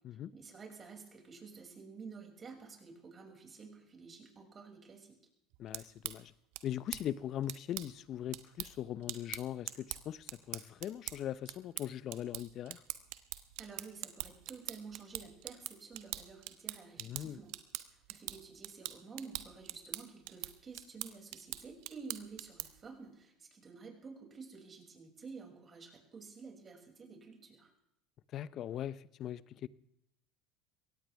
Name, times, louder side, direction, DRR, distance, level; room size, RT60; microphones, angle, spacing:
voice 1, 0.3-5.2 13.6-17.5 17.9-27.7, right 5 dB, 30° right, 6.3 m, -51 dB
sound 1, 5.5-22.9, right 17 dB, 70° right, 1.2 m, -45 dB
voice 2, 5.6-6.3 6.6-12.8 17.0-17.4 28.3-29.7, left 11 dB, 50° left, 0.7 m, -40 dB
22.5 x 18.0 x 3.5 m
hypercardioid pair, 80°, 0 cm